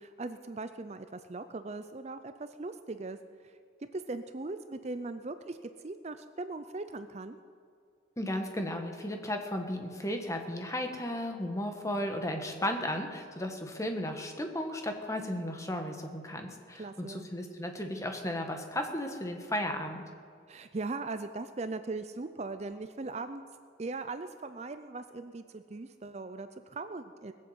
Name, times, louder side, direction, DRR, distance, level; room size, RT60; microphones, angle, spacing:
voice 1, 0.0-3.2 3.4-3.5 3.9-5.6 5.8-7.4 16.8-17.3 20.5-23.5 23.8-27.3, right 3 dB, 35° right, 10 dB, 0.5 m, -39 dB
voice 2, 8.2-20.0, left 1 dB, 15° left, 4 dB, 1.3 m, -35 dB
20.0 x 7.7 x 7.9 m, 2.2 s
head